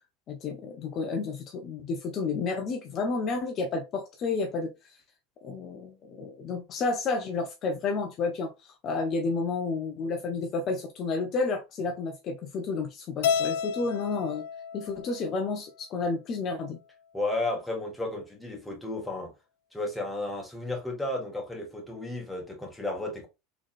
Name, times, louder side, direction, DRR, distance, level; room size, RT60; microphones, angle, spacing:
voice 1, 0.3-4.7 5.4-14.4 14.7-16.8, left 4 dB, 45° left, 0.8 m, -31 dB
Keyboard (musical), 13.2-15.6, left 7 dB, 75° left, 0.3 m, -31 dB
voice 2, 17.1-19.3 19.7-23.3, left 2 dB, 5° left, 1.8 m, -33 dB
4.0 x 3.5 x 2.5 m
hypercardioid pair, 90°, 0 cm